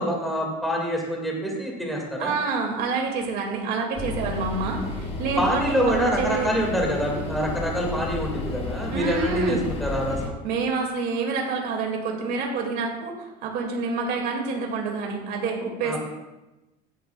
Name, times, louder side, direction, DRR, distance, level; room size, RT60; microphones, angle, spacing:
voice 1, 0.0-2.3 5.4-10.4 15.8-16.0, equal, ahead, -2 dB, 1.9 m, -26 dB
voice 2, 2.2-6.6 8.9-9.6 10.4-16.0, right 4 dB, 55° right, 1 dB, 2.1 m, -27 dB
sound 1, 4.0-10.3, left 2 dB, 30° left, 1.3 m, -32 dB
16.5 x 10.0 x 2.3 m, 1.0 s
cardioid pair, 150°, 19 cm